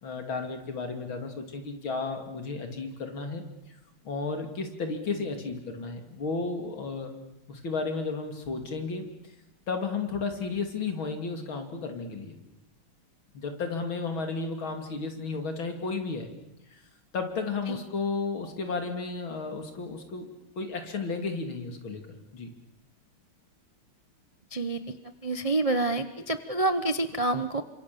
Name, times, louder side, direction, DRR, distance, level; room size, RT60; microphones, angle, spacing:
voice 1, 0.0-3.4 4.1-7.1 7.5-9.1 9.7-12.4 13.3-16.3 16.7-16.8 17.1-22.0 22.3-22.5, left 4 dB, 65° left, 5 dB, 3.6 m, -33 dB
voice 2, 24.5-24.8 25.2-27.6, right 2 dB, 40° right, 9 dB, 0.4 m, -27 dB
29.0 x 25.5 x 7.0 m, 0.87 s
omnidirectional pair, 2.4 m